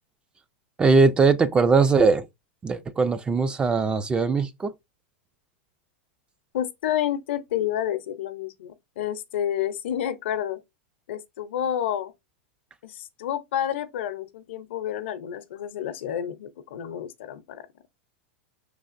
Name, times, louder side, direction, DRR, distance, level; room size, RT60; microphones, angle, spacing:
voice 1, 0.8-2.3 2.6-4.7, right 4 dB, 15° right, 0.3 m, -20 dB
voice 2, 6.5-10.6 11.1-12.1 12.8-17.7, left 10 dB, 75° left, 0.7 m, -29 dB
5.5 x 3.3 x 2.5 m
supercardioid pair, 135°, 6 cm